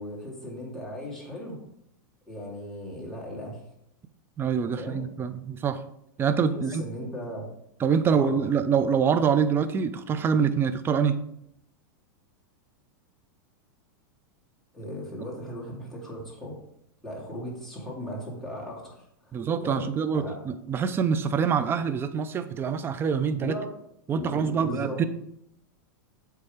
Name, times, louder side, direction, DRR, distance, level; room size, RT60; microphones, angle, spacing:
voice 1, 0.0-1.6 2.3-3.6 4.7-5.0 6.5-7.5 8.1-8.4 14.7-16.6 17.0-20.4 23.3-23.7 24.1-25.0, equal, ahead, -6 dB, 2.5 m, -37 dB
voice 2, 4.4-5.8 6.2-6.8 7.8-11.2 19.3-23.6 24.1-25.0, right 6 dB, 20° right, 11 dB, 0.5 m, -25 dB
7.7 x 3.6 x 4.9 m, 0.75 s
hypercardioid pair, 125°, 11 cm